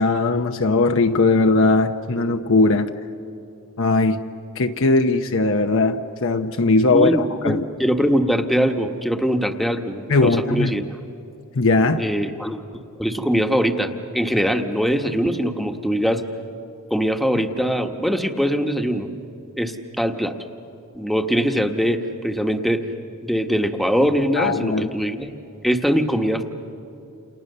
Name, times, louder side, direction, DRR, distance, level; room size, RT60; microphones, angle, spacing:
voice 1, 0.0-2.9 3.8-4.2 4.6-7.6 10.1-10.7 11.5-12.1 24.4-24.9, left 3 dB, 65° left, 6 dB, 0.8 m, -19 dB
voice 2, 6.9-10.8 12.0-16.2 16.9-19.1 19.6-20.3 20.9-22.8 23.2-25.3 25.6-26.4, equal, ahead, 5 dB, 1.3 m, -22 dB
29.0 x 28.5 x 6.8 m, 2.7 s
head